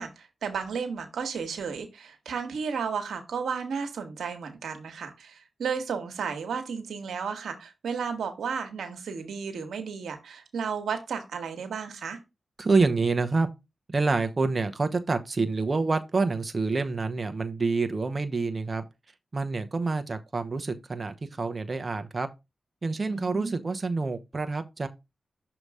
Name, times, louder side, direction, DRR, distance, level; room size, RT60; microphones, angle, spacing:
voice 1, 0.0-12.2 23.1-23.7, right 6 dB, 90° right, 1.3 m, -33 dB
voice 2, 12.6-13.5 13.9-18.8 19.3-22.3 22.8-24.9, right 3 dB, 45° right, 0.8 m, -27 dB
6.6 x 3.0 x 4.8 m
cardioid pair, 45°, 0 cm